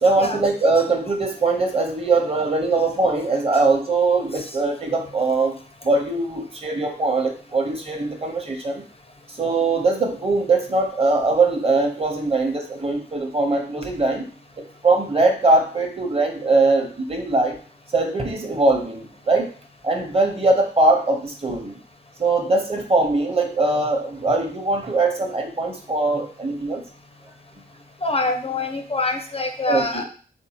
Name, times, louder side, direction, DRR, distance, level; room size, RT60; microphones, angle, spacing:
voice 1, 0.0-5.5 5.8-8.8 9.4-14.3 14.8-17.6 17.9-19.5 19.8-21.8 22.2-26.8 29.7-30.0, right 3 dB, 30° right, 3 dB, 0.9 m, -21 dB
voice 2, 28.0-30.0, left 2 dB, 30° left, 5 dB, 0.4 m, -25 dB
3.7 x 2.6 x 2.9 m, 0.41 s
cardioid pair, 75°, 19 cm